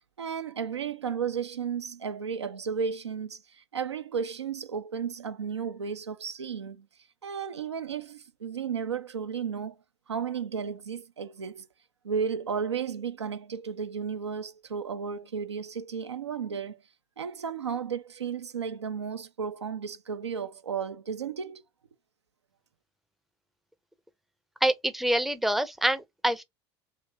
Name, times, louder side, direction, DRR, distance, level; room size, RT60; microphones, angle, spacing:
voice 1, 0.2-6.9 7.2-9.8 10.1-11.7 12.0-16.8 17.2-21.6, right 6 dB, 80° right, 0.4 m, -33 dB
voice 2, 24.6-26.4, right 1 dB, ahead, 0.5 m, -26 dB
2.8 x 2.7 x 3.4 m
figure-of-eight pair, 70°, 14 cm